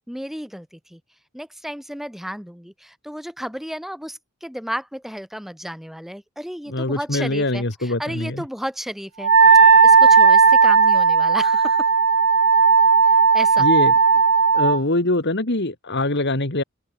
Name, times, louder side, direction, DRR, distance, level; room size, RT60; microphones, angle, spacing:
voice 1, 0.1-1.0 1.3-9.3 9.8-11.9 13.3-13.7, equal, ahead, 2.0 m, -33 dB
voice 2, 6.7-8.4 13.6-13.9 14.5-16.6, left 2 dB, 55° left, 2.6 m, -23 dB
Wind instrument woodwind instrument, 9.2-14.8, right 5 dB, 75° right, 1.4 m, -14 dB
open air
head